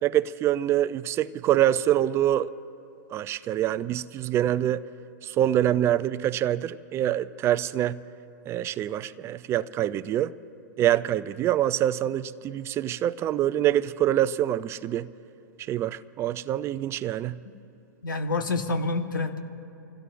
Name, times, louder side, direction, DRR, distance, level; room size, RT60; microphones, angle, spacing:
voice 1, 0.0-2.5 3.1-4.8 5.2-8.0 8.5-10.3 10.8-15.1 15.7-17.4, right 12 dB, 25° right, 0.4 m, -25 dB
voice 2, 18.0-19.4, left 3 dB, 90° left, 1.4 m, -28 dB
27.5 x 16.5 x 2.5 m
hypercardioid pair, 125°, 11 cm